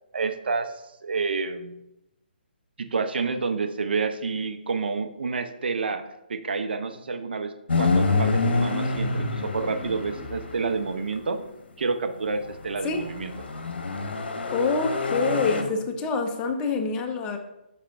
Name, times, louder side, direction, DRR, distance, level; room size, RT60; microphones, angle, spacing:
voice 1, 0.1-0.7 1.0-1.8 2.8-6.0 6.3-11.4 11.8-13.3, right 4 dB, 65° right, 8 dB, 0.6 m, -29 dB
sound 1, 7.7-11.2 12.3-15.6, left 3 dB, 70° left, 1.0 m, -27 dB
voice 2, 14.5-17.4, left 4 dB, 15° left, 4 dB, 0.6 m, -26 dB
5.7 x 5.1 x 3.4 m, 0.88 s
figure-of-eight pair, 145°, 6 cm